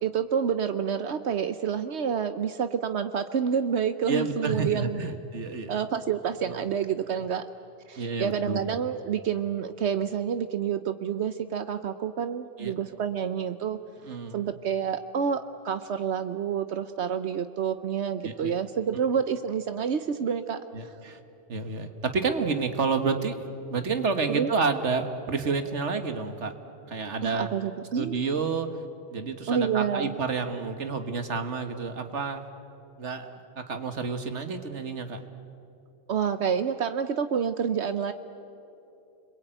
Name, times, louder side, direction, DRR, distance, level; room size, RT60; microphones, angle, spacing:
voice 1, 0.0-5.2 5.7-7.4 7.9-13.8 14.3-20.9 24.3-24.5 27.2-28.2 29.5-30.2 36.1-38.1, right 7 dB, 75° right, 10 dB, 1.1 m, -28 dB
voice 2, 4.1-5.7 8.0-8.6 12.6-12.7 14.0-14.5 18.2-18.5 20.7-21.2 21.5-26.5 26.9-27.5 28.0-28.8 29.1-32.4 33.0-35.2, right 4 dB, 90° right, 8 dB, 1.8 m, -29 dB
29.5 x 22.0 x 9.1 m, 2.8 s
omnidirectional pair, 1.2 m